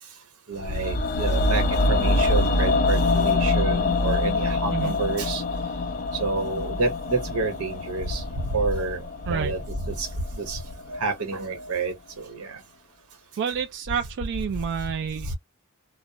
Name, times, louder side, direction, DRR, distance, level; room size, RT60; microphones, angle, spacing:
voice 1, 0.5-5.4 6.2-8.2 8.5-9.0 9.3-10.1 10.4-10.6 11.0-11.9 12.3-12.6 15.2-15.3, right 3 dB, 85° right, 1.0 m, -28 dB
sound 1, 0.6-10.7 11.0-11.1, left 2 dB, 40° left, 0.4 m, -25 dB
voice 2, 13.4-15.3, right 7 dB, 55° right, 0.3 m, -29 dB
2.3 x 2.0 x 2.7 m
head